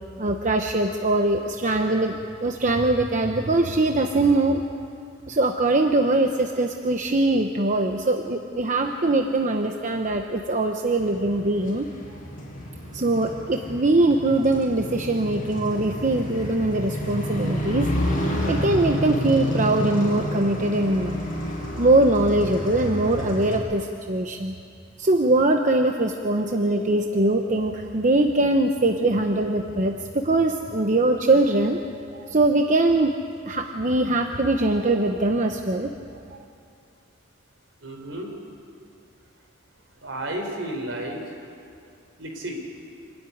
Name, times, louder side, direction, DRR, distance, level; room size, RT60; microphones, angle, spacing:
voice 1, 0.2-4.6 5.3-11.9 12.9-17.9 18.5-21.2 21.8-24.5 25.0-31.8 32.2-33.2 33.4-35.9 36.3-36.4, right 2 dB, 40° right, 4 dB, 0.9 m, -22 dB
Motorcycle, 11.0-23.6, equal, 45° left, 5.9 m, -30 dB
voice 2, 37.8-38.3 40.0-41.2 42.2-42.6, right 1 dB, 70° right, 2 dB, 4.3 m, -32 dB
26.5 x 13.0 x 9.9 m, 2.4 s
head